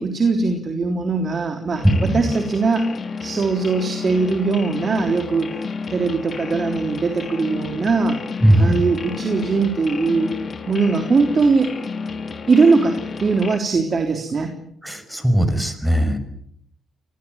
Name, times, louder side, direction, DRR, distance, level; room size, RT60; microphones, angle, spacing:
voice 1, 0.0-1.9 2.1-2.9 3.2-5.6 5.9-8.2 8.6-10.3 10.7-11.8 12.5-14.5, right 4 dB, 40° right, 5 dB, 3.5 m, -20 dB
sound 1, 1.7-13.6, left 5 dB, 40° left, 2.4 m, -31 dB
voice 2, 1.8-2.3 8.4-8.8 14.8-16.2, equal, 5° right, 11 dB, 5.8 m, -18 dB
24.5 x 20.5 x 9.5 m, 0.71 s
cardioid pair, 90°, 0 cm